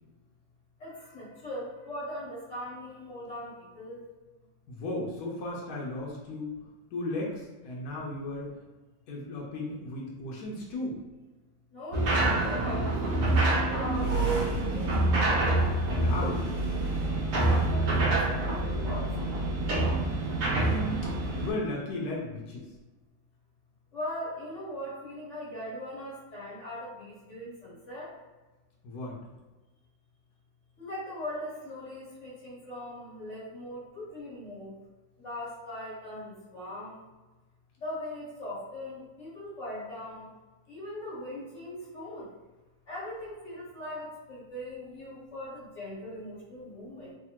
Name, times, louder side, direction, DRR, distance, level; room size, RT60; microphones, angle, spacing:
voice 1, 0.8-4.0 11.7-13.4 13.7-15.0 17.4-19.3 23.9-28.2 30.8-34.8 35.2-37.1 37.8-40.3 40.7-42.3 42.9-47.1, left 1 dB, 50° left, -8 dB, 1.7 m, -40 dB
voice 2, 4.7-6.5 6.9-8.5 9.1-11.0 15.9-16.5 20.3-21.1 21.4-22.6 28.8-29.2, left 2 dB, 90° left, -3 dB, 1.2 m, -35 dB
sound 1, 11.9-21.5, right 2 dB, 65° right, 1.0 m, -26 dB
3.3 x 2.1 x 2.9 m, 1.2 s
omnidirectional pair, 1.6 m